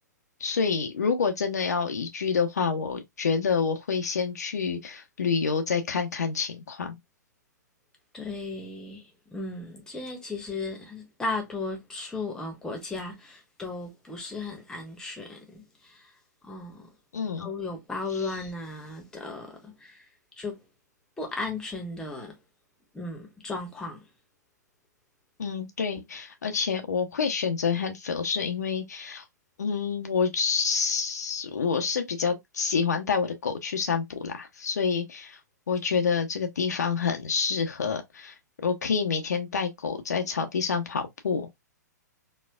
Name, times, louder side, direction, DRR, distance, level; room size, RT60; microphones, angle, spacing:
voice 1, 0.4-6.9 17.1-17.5 18.2-18.3 25.4-29.2 29.6-35.4 35.7-41.5, left 5 dB, 65° left, 0.6 m, -28 dB
voice 2, 8.1-16.1 16.4-16.9 17.4-20.1 20.4-20.6 21.2-22.3 22.9-24.0, left 3 dB, 5° left, 1.0 m, -36 dB
4.2 x 2.3 x 2.2 m
figure-of-eight pair, 115°, 10 cm